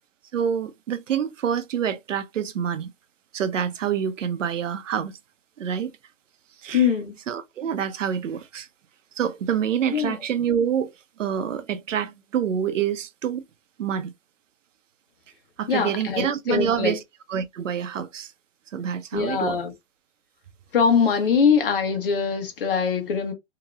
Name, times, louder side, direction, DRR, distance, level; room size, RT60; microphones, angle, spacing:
voice 1, 0.3-2.9 3.3-5.2 5.6-5.9 6.6-6.9 7.3-8.7 9.2-10.9 11.2-13.4 13.8-14.1 15.6-17.0 17.3-18.3 18.7-19.6, right 8 dB, 85° right, 0.7 m, -27 dB
voice 2, 6.7-7.2 9.9-10.1 15.7-16.9 19.1-19.7 20.7-23.3, left 6 dB, 45° left, 0.9 m, -22 dB
3.0 x 2.9 x 2.4 m
hypercardioid pair, 165°, 37 cm